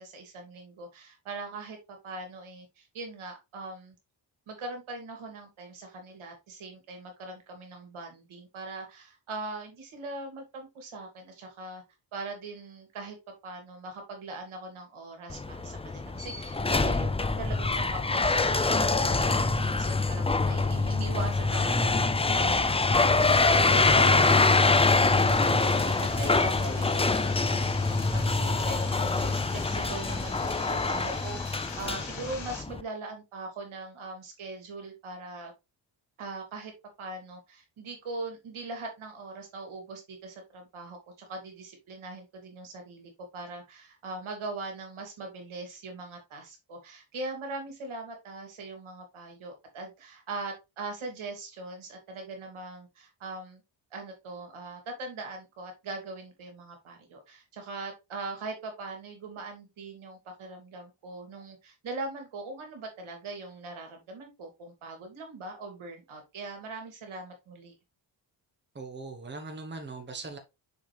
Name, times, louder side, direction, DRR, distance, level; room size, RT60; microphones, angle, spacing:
voice 1, 0.0-3.9 4.5-11.8 12.1-13.2 13.4-35.5 36.2-36.7 37.0-53.6 53.9-67.7, right 3 dB, 85° right, 2.9 m, -41 dB
sound 1, 15.3-32.8, left 3 dB, 15° left, 0.5 m, -25 dB
sound 2, 23.7-32.6, left 5 dB, 85° left, 2.8 m, -43 dB
voice 2, 68.7-70.4, right 3 dB, 20° right, 1.2 m, -40 dB
6.7 x 5.2 x 3.4 m
cardioid pair, 110°, 47 cm